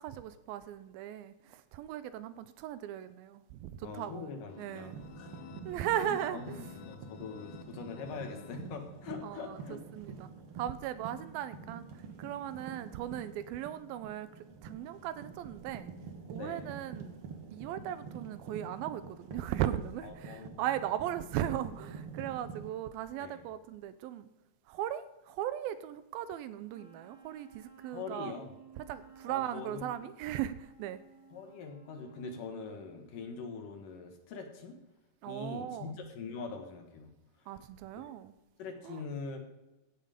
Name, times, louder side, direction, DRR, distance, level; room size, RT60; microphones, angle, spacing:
voice 1, 0.0-4.3 4.6-5.0 5.7-6.7 9.2-11.9 12.2-15.9 16.3-17.2 17.5-24.3 24.7-28.4 28.8-31.0 35.2-36.0 37.5-38.3 38.8-39.1, right 11 dB, 85° right, 2.4 m, -38 dB
voice 2, 3.8-5.3 5.9-9.8 16.4-16.7 20.0-20.7 23.2-23.5 27.9-28.6 29.3-30.1 31.3-34.8 35.3-37.1 38.6-39.4, left 4 dB, 65° left, 2.9 m, -43 dB
sound 1, 4.5-9.2, left 9 dB, 85° left, 2.4 m, -52 dB
sound 2, 4.8-22.7, right 5 dB, 55° right, 1.6 m, -47 dB
Wind instrument woodwind instrument, 26.7-32.8, right 7 dB, 30° right, 3.7 m, -57 dB
16.0 x 7.4 x 5.1 m
omnidirectional pair, 4.3 m